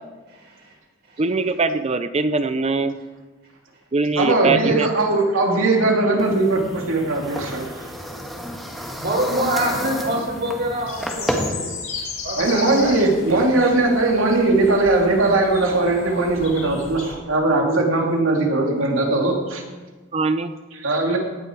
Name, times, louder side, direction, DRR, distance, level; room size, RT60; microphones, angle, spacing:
voice 1, 0.3-0.7 1.1-1.3 8.7-11.7 12.2-13.0, right 1 dB, 55° right, -2 dB, 4.7 m, -26 dB
voice 2, 1.2-3.0 3.9-4.9 20.1-20.5, right 3 dB, 30° right, 11 dB, 0.6 m, -22 dB
voice 3, 4.2-7.9 12.4-19.6 20.7-21.2, right 2 dB, 85° right, 0 dB, 2.7 m, -19 dB
sound 1, 6.2-11.5, equal, ahead, 1.6 m, -31 dB
sound 2, 10.9-17.1, left 4 dB, 45° left, 3.9 m, -35 dB
17.5 x 10.0 x 4.7 m, 1.2 s
head